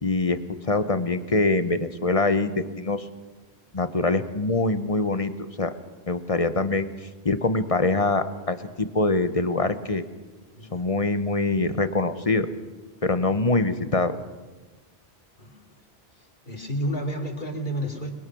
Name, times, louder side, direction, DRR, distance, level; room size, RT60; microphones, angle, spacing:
voice 1, 0.0-3.1 3.7-5.3 5.6-5.7 6.1-6.9 7.2-10.0 10.7-12.5 13.0-14.2, left 2 dB, 35° left, 11 dB, 1.1 m, -24 dB
voice 2, 15.4-15.7 16.2-18.1, equal, 50° left, 1 dB, 3.3 m, -31 dB
29.5 x 21.0 x 6.2 m, 1.3 s
omnidirectional pair, 1.0 m